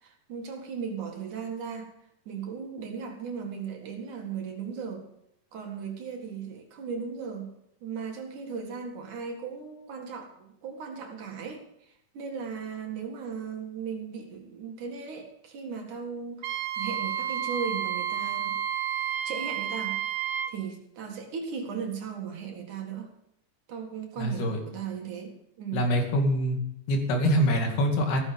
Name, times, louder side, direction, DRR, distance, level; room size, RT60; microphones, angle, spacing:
voice 1, 0.0-1.9 2.3-5.0 5.5-7.5 7.8-18.6 19.2-20.0 20.5-23.1 23.7-25.9, right 6 dB, 60° right, 2 dB, 3.1 m, -37 dB
Wind instrument woodwind instrument, 16.4-20.5, right 10 dB, 80° right, 1.5 m, -31 dB
voice 2, 24.2-24.6 25.7-26.6 26.9-28.2, equal, 90° left, 2 dB, 4.3 m, -24 dB
14.5 x 13.5 x 5.2 m, 0.75 s
omnidirectional pair, 4.3 m